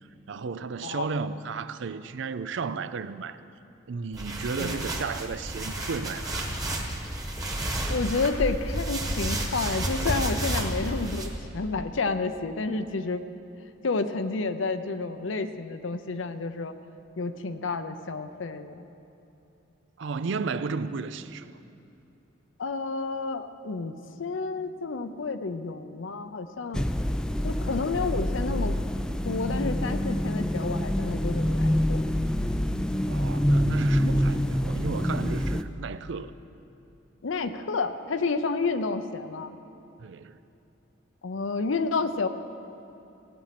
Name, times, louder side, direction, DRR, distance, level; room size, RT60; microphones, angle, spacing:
voice 1, 0.3-3.4 3.9-6.6 20.0-21.5 33.0-36.3 40.0-40.3, right 4 dB, 70° right, 0.5 m, -33 dB
sound 1, 4.1-11.3, right 1 dB, 20° right, 1.3 m, -31 dB
voice 2, 4.6-5.0 7.9-13.2 13.8-16.7 17.2-18.8 22.6-23.9 24.2-26.8 27.4-28.8 29.2-32.0 37.2-39.6 41.2-42.3, left 4 dB, 80° left, 0.6 m, -30 dB
sound 2, 26.7-35.6, equal, 5° left, 0.3 m, -26 dB
15.5 x 8.6 x 5.9 m
head